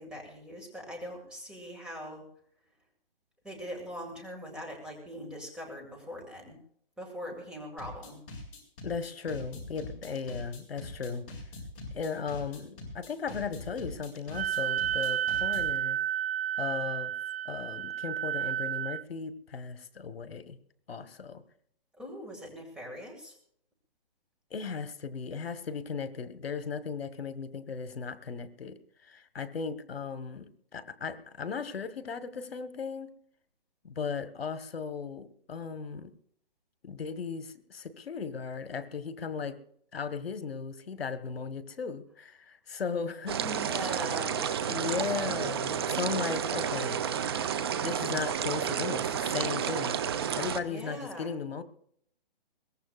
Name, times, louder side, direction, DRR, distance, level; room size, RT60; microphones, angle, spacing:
voice 1, 0.0-2.3 3.4-6.6 7.0-8.2 22.0-23.3 43.4-44.8 50.6-51.3, equal, 5° right, 0 dB, 2.0 m, -41 dB
sound 1, 7.8-15.8, left 2 dB, 35° left, 6.8 m, -43 dB
voice 2, 8.8-11.2 11.9-16.0 16.6-17.1 17.4-20.6 20.9-21.4 24.5-30.5 30.7-33.1 33.8-36.1 36.8-39.6 39.9-43.4 44.7-47.0 47.8-50.0 50.4-51.6, left 5 dB, 80° left, 11 dB, 1.4 m, -36 dB
Wind instrument woodwind instrument, 14.3-19.0, right 10 dB, 80° right, 0.5 m, -31 dB
sound 2, 43.3-50.6, right 8 dB, 25° right, 0.7 m, -31 dB
22.0 x 18.5 x 2.4 m, 0.66 s
hypercardioid pair, 165°, 29 cm